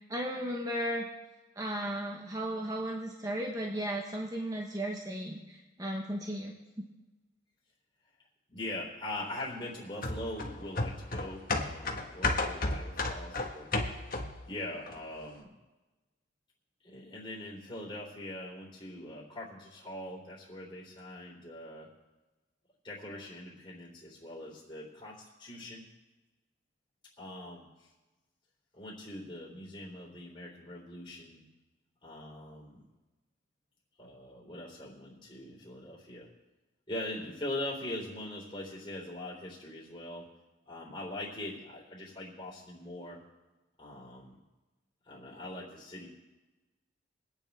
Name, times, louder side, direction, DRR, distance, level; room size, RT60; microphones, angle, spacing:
voice 1, 0.1-1.1 1.6-6.9, equal, 20° right, 0 dB, 1.2 m, -35 dB
voice 2, 8.5-13.7 14.5-15.5 16.8-21.9 22.8-25.8 27.2-27.9 28.7-31.4 32.0-32.8 34.0-36.3 36.9-40.3 40.7-43.2 43.8-44.4 45.1-46.1, left 1 dB, 25° left, -6 dB, 3.8 m, -42 dB
sound 1, 10.0-14.5 14.9-15.0, left 2 dB, 45° left, 1.5 m, -33 dB
24.5 x 9.1 x 3.5 m, 1.1 s
head